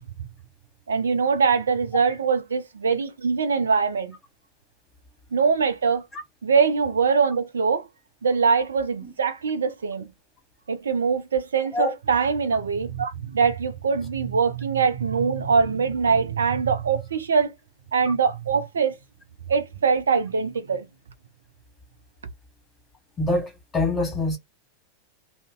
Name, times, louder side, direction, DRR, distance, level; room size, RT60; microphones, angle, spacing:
voice 1, 0.9-4.1 5.3-6.0 6.4-7.9 8.2-10.1 10.7-17.5 17.9-19.0 19.5-20.9, right 5 dB, 70° right, 0.5 m, -23 dB
voice 2, 23.2-24.4, left 2 dB, 15° left, 1.3 m, -25 dB
2.5 x 2.1 x 3.6 m
figure-of-eight pair, 90°, 0 cm